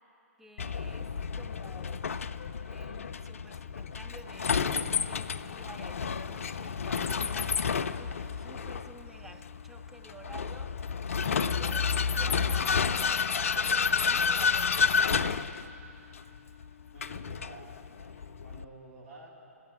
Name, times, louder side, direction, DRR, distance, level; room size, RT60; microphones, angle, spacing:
voice 1, 0.4-2.2 2.7-10.8 11.2-15.4, right 2 dB, 5° right, 5 dB, 0.4 m, -51 dB
Vehicle, 0.6-18.6, left 6 dB, 60° left, 0.3 m, -30 dB
voice 2, 16.9-19.3, right 2 dB, 70° right, -4 dB, 2.6 m, -51 dB
18.5 x 8.2 x 4.5 m, 2.8 s
figure-of-eight pair, 120°, 8 cm